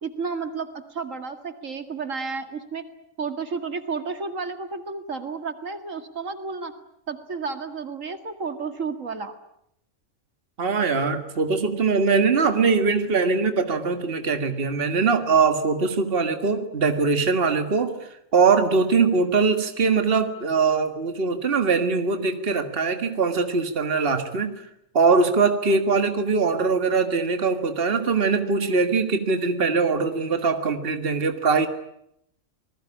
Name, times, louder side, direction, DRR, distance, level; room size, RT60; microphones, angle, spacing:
voice 1, 0.0-2.9 3.2-6.7 7.1-9.3, right 4 dB, 75° right, 8 dB, 2.4 m, -32 dB
voice 2, 10.6-17.9 18.3-24.5 24.9-31.7, right 4 dB, 45° right, 7 dB, 2.0 m, -22 dB
27.5 x 20.5 x 9.9 m, 0.76 s
omnidirectional pair, 1.4 m